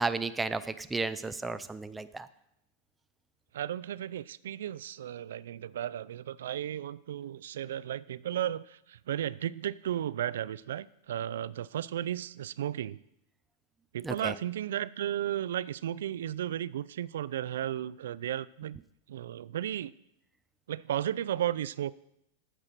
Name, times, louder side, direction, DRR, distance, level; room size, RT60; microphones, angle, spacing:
voice 1, 0.0-2.3 14.0-14.3, right 3 dB, 5° right, 11 dB, 0.3 m, -33 dB
voice 2, 3.5-13.0 13.9-18.8 19.1-19.9 20.7-21.9, right 11 dB, 85° right, 19 dB, 0.4 m, -34 dB
9.1 x 7.4 x 6.6 m, 0.79 s
supercardioid pair, 175°, 0 cm